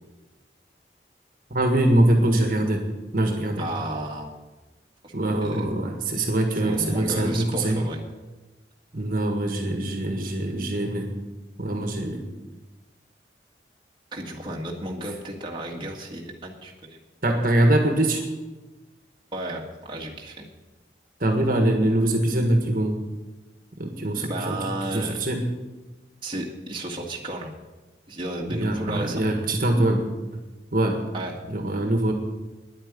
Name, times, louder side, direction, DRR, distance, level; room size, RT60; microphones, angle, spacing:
voice 1, 1.5-2.8 3.1-3.7 5.1-7.8 8.9-11.1 11.6-12.2 17.2-18.2 21.2-23.0 23.8-24.6 24.8-25.4 28.5-30.0 30.7-31.0 31.5-32.1, right 1 dB, 50° right, 3 dB, 1.7 m, -23 dB
voice 2, 3.6-4.3 5.0-5.1 5.4-5.6 6.6-8.0 14.1-17.0 19.3-20.5 24.3-25.2 26.2-27.5 28.1-29.3 31.1-31.3, right 1 dB, 25° right, -1 dB, 1.8 m, -33 dB
10.5 x 9.0 x 9.8 m, 1.2 s
head